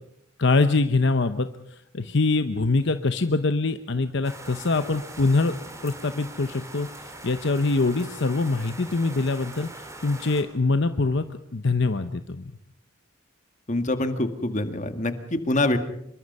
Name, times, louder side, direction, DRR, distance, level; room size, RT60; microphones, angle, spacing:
voice 1, 0.4-1.5 1.9-5.5 5.8-6.9 7.2-9.7 10.0-11.2 11.5-12.5, left 3 dB, 60° left, 10 dB, 0.9 m, -23 dB
sound 1, 4.2-10.4, right 2 dB, 15° right, 3.4 m, -42 dB
voice 2, 13.7-15.8, left 2 dB, 35° left, 8 dB, 1.9 m, -25 dB
26.5 x 23.0 x 5.5 m, 0.76 s
head